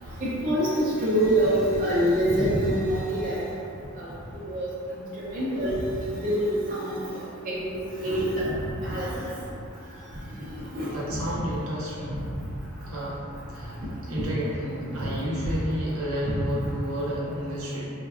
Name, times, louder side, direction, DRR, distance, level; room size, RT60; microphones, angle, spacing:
voice 1, 0.4-3.4 4.0-4.1 4.4-4.7 5.2-5.7 6.1-7.0 7.5-8.4 8.8-9.3 10.8-10.9, right 1 dB, 40° right, -8 dB, 0.4 m, -25 dB
voice 2, 10.9-12.2 12.9-17.8, equal, 80° right, -6 dB, 0.7 m, -31 dB
3.3 x 2.1 x 2.3 m, 2.6 s
head